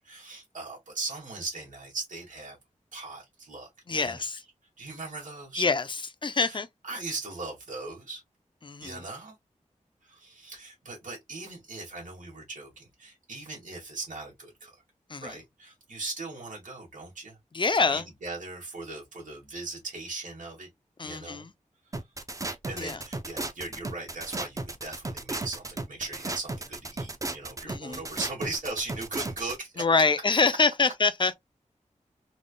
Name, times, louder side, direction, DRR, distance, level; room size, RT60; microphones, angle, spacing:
voice 1, 0.0-2.6 2.9-3.7 4.0-4.2 4.8-5.7 6.2-8.2 8.8-9.4 10.0-14.8 15.2-17.4 17.7-20.7 21.0-21.5 21.8-22.1 22.6-29.9, right 3 dB, 80° right, 2.0 m, -39 dB
voice 2, 3.9-4.4 5.6-5.8 6.2-6.7 8.6-9.0 15.1-15.3 17.5-18.0 21.0-21.5 22.8-23.0 27.7-28.0 29.8-31.3, left 4 dB, 40° left, 0.5 m, -25 dB
sound 1, 21.9-29.6, right 2 dB, 25° right, 0.6 m, -34 dB
3.8 x 3.5 x 2.2 m
wide cardioid pair, 100°, 13 cm